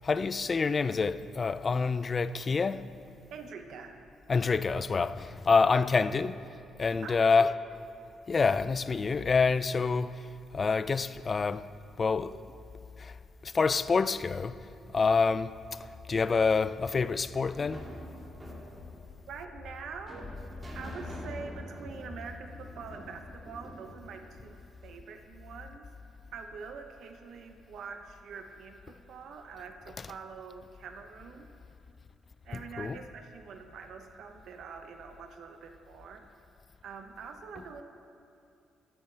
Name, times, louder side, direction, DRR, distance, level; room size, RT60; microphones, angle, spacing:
voice 1, 0.0-2.8 4.3-6.4 6.8-7.6 8.3-10.2 10.5-11.7 12.0-12.4 13.0-13.1 13.4-14.6 14.9-15.6 16.1-17.8 30.0-30.1 32.5-33.0 37.6-37.8, left 4 dB, 35° left, 0.4 m, -27 dB
voice 2, 3.3-4.0 5.6-5.8 7.0-7.5 19.3-20.3 20.7-25.9 26.3-31.5 32.4-36.2 36.8-37.8, right 5 dB, 70° right, 0.8 m, -45 dB
sound 1, 17.5-25.0, right 1 dB, 20° right, 2.3 m, -47 dB
14.0 x 12.5 x 3.3 m
cardioid pair, 90°, 0 cm